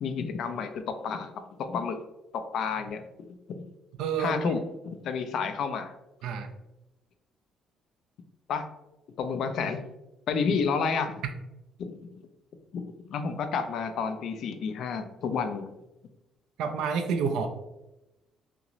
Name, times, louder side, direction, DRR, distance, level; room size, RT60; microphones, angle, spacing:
voice 1, 0.0-1.3 1.6-2.0 2.3-3.6 4.2-5.9 8.5-8.6 9.2-9.9 10.3-11.2 11.8-12.0 12.7-15.7, left 5 dB, 50° left, 8 dB, 0.4 m, -30 dB
voice 2, 4.0-4.5 6.2-6.5 16.6-17.5, right 6 dB, 70° right, 6 dB, 0.3 m, -29 dB
5.7 x 2.0 x 2.5 m, 0.96 s
cardioid pair, 180°, 0 cm